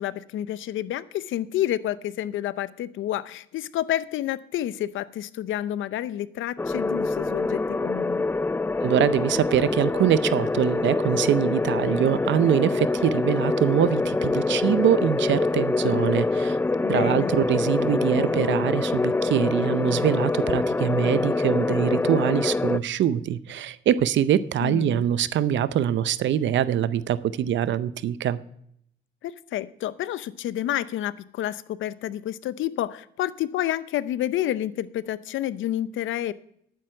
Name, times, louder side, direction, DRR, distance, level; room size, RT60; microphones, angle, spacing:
voice 1, 0.0-8.2 16.8-17.3 24.6-25.1 29.2-36.3, left 12 dB, 80° left, 17 dB, 0.7 m, -29 dB
sound 1, 6.6-22.8, left 3 dB, 10° left, 0.3 m, -25 dB
voice 2, 8.8-16.6 16.9-28.4, right 10 dB, 70° right, 16 dB, 0.6 m, -24 dB
11.5 x 9.3 x 4.4 m, 0.71 s
cardioid pair, 90°, 20 cm